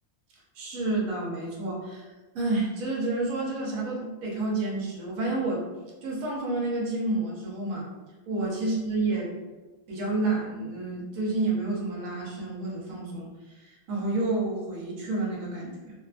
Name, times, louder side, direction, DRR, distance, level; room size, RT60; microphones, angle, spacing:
voice 1, 0.5-2.1 2.3-5.7 6.0-7.9 8.3-9.3 9.9-13.3 13.5-15.9, right 2 dB, 70° right, -3 dB, 1.1 m, -29 dB
2.9 x 2.1 x 2.4 m, 1.2 s
omnidirectional pair, 1.5 m